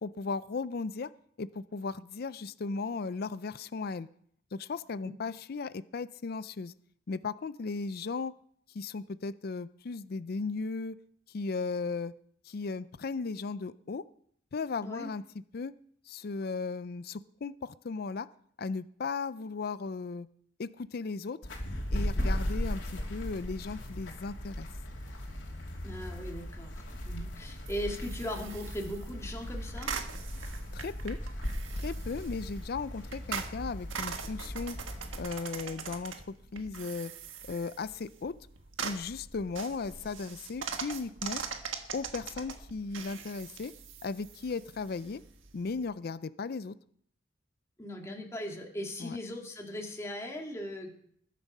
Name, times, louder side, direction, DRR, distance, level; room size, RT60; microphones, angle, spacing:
voice 1, 0.0-1.1 1.4-4.1 4.5-6.7 7.1-8.3 8.7-11.0 11.3-12.1 12.4-14.0 14.5-15.2 15.5-15.7 16.1-18.3 18.6-20.3 20.6-21.4 21.9-24.7 30.7-31.2 31.7-34.8 35.2-37.1 37.5-38.3 38.8-41.4 41.9-43.7 44.0-45.2 45.5-46.7 49.0-49.2, left 4 dB, 50° left, 15 dB, 0.4 m, -36 dB
sound 1, 21.4-35.2, equal, 70° left, 3.0 m, -37 dB
voice 2, 25.8-29.9 47.8-51.0, equal, 15° left, 0 dB, 2.0 m, -39 dB
sound 2, 27.7-45.9, right 6 dB, 90° right, 1.5 m, -42 dB
20.5 x 7.3 x 5.4 m, 0.65 s
head